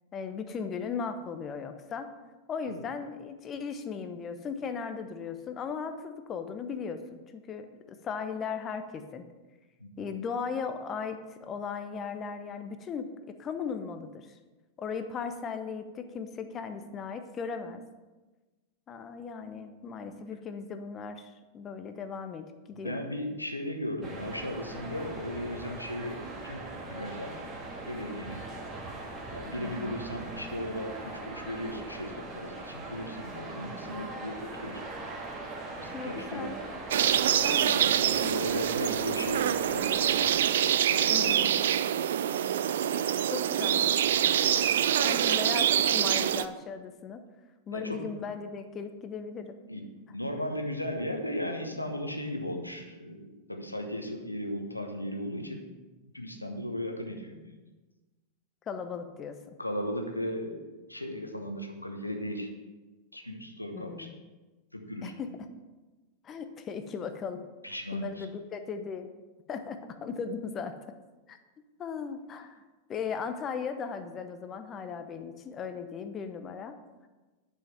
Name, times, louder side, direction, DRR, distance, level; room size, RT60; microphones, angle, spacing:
voice 1, 0.1-2.1 2.5-9.2 10.0-14.4 14.8-17.8 18.9-23.0 29.6-30.0 35.9-36.6 37.4-37.9 41.1-41.5 43.3-44.4 44.9-47.2 47.7-49.6 58.7-59.5 63.7-64.1 65.0-65.3 66.2-67.4 67.9-69.1 69.5-70.7 71.3-71.4 71.8-72.6 72.9-76.8, left 6 dB, 25° left, 8 dB, 0.8 m, -37 dB
voice 2, 22.7-26.2 26.4-26.6 26.9-27.3 27.8-28.4 29.3-34.8 35.7-36.5 37.7-40.3 40.8-41.5 42.8-42.9 47.7-48.1 49.7-49.8 50.1-55.7 56.1-57.6 59.6-62.5 63.1-64.1 64.7-65.1 67.6-68.3, left 1 dB, 85° left, 4 dB, 1.1 m, -36 dB
sound 1, 24.0-40.4, right 2 dB, 25° right, 1.7 m, -41 dB
sound 2, 36.9-46.5, right 10 dB, 60° right, 0.3 m, -25 dB
10.0 x 5.8 x 5.6 m, 1.2 s
figure-of-eight pair, 90°, 0 cm